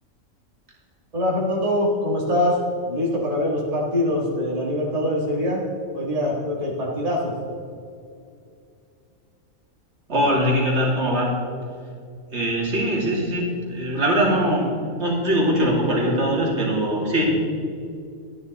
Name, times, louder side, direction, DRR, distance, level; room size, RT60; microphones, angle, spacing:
voice 1, 1.1-2.6 2.9-5.7 5.9-7.3, left 1 dB, 25° right, -4 dB, 1.7 m, -23 dB
voice 2, 10.1-11.3 12.3-14.7 15.0-17.4, equal, 50° right, -3 dB, 2.4 m, -21 dB
12.5 x 9.5 x 4.0 m, 2.4 s
omnidirectional pair, 1.4 m